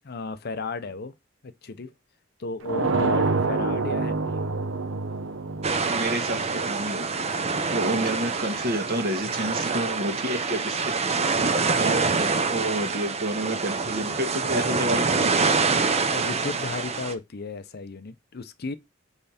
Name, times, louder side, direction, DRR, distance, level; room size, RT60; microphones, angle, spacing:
voice 1, 0.0-1.1 1.4-1.9 2.4-4.4 16.1-18.8, left 3 dB, 55° left, 0.7 m, -34 dB
sound 1, 2.7-7.4, right 3 dB, 75° right, 0.9 m, -27 dB
sound 2, 5.6-17.1, right 4 dB, 35° right, 0.7 m, -26 dB
voice 2, 5.8-7.3 7.7-10.9 11.3-15.8, right 1 dB, 55° right, 1.5 m, -30 dB
5.6 x 4.6 x 4.2 m
head